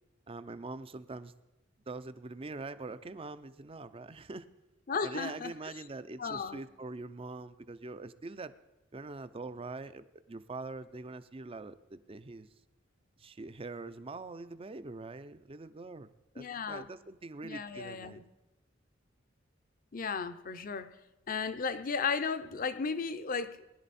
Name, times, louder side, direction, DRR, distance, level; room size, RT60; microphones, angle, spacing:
voice 1, 0.3-1.3 1.9-4.5 5.0-8.5 8.9-12.5 13.2-16.1 16.3-18.2, right 3 dB, 30° right, 13 dB, 0.5 m, -43 dB
voice 2, 4.9-5.5 6.2-6.6 16.4-16.9 17.4-18.2 19.9-20.9 21.3-23.6, left 5 dB, 45° left, 12 dB, 0.7 m, -34 dB
19.5 x 11.0 x 4.2 m, 0.99 s
head